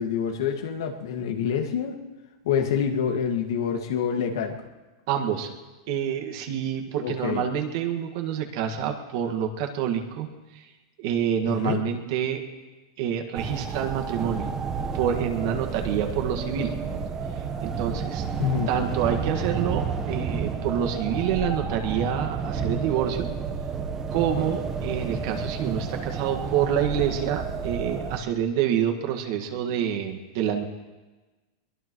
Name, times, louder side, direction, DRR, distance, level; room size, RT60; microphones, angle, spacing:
voice 1, 0.0-2.0 2.4-4.6 7.0-7.5 11.4-11.8 18.4-18.7, left 7 dB, 75° left, 4 dB, 2.0 m, -27 dB
voice 2, 5.1-5.5 5.9-10.7 11.0-12.4 13.0-14.5 14.9-16.8 17.6-18.2 18.7-23.3 24.1-30.6, right 9 dB, 55° right, 3 dB, 1.8 m, -27 dB
sound 1, 13.3-28.2, right 5 dB, 20° right, 1.1 m, -31 dB
22.5 x 20.5 x 3.2 m, 1.2 s
supercardioid pair, 155°, 2 cm